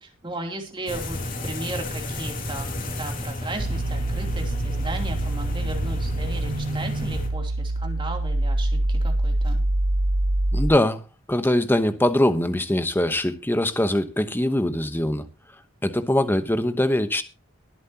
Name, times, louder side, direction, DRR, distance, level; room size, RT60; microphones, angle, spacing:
voice 1, 0.0-2.7 3.0-9.6, right 2 dB, 25° right, 3.0 m, -35 dB
sound 1, 0.9-7.3, left 1 dB, 45° left, 2.6 m, -31 dB
sound 2, 3.6-10.7, right 1 dB, 75° right, 0.7 m, -25 dB
voice 2, 10.5-11.0 11.3-15.2 15.8-17.2, left 1 dB, 10° left, 1.0 m, -22 dB
22.5 x 7.6 x 2.9 m
head